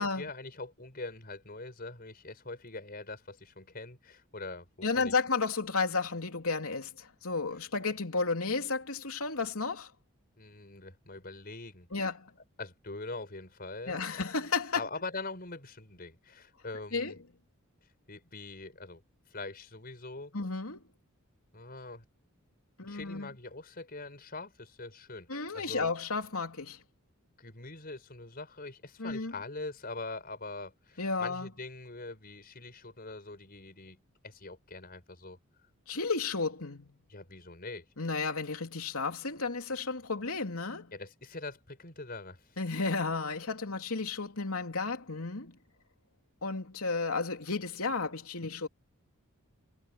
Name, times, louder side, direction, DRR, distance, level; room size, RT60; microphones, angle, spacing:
voice 1, 0.2-4.7 5.0-5.1 7.6-7.7 10.4-11.9 12.6-14.0 14.7-17.2 18.1-19.0 19.3-20.3 21.5-22.0 22.8-25.9 27.4-34.0 34.2-35.4 37.1-37.9 40.9-42.6, left 3 dB, 45° left, 5.2 m, -43 dB
voice 2, 4.8-9.9 11.9-12.3 13.9-14.8 16.9-17.1 20.3-20.8 22.8-23.3 25.3-26.8 29.0-29.3 31.0-31.5 35.9-37.0 38.0-40.9 42.6-45.6 46.4-48.7, left 4 dB, 80° left, 3.1 m, -33 dB
head